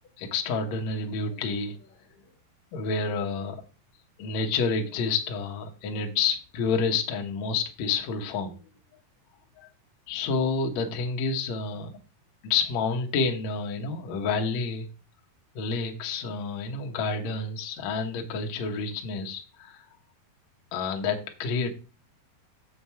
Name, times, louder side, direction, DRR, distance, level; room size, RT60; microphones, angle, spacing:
voice 1, 0.2-1.9 2.7-3.6 4.2-8.6 9.6-9.7 10.1-11.9 12.4-14.9 15.6-19.9 20.7-21.7, left 4 dB, 70° left, 3 dB, 1.7 m, -29 dB
7.2 x 6.6 x 4.6 m, 0.34 s
omnidirectional pair, 4.7 m